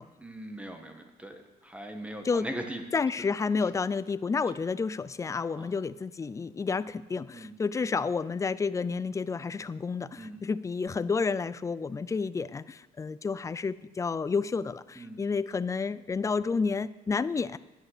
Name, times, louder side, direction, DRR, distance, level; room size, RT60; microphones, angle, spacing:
voice 1, 0.2-2.8 5.5-5.7 7.3-7.5 10.2-10.4 14.9-15.2, right 1 dB, 5° right, 5 dB, 1.6 m, -40 dB
voice 2, 2.9-17.6, left 5 dB, 20° left, 16 dB, 0.4 m, -30 dB
10.5 x 9.0 x 6.7 m, 1.1 s
cardioid pair, 110°, 17 cm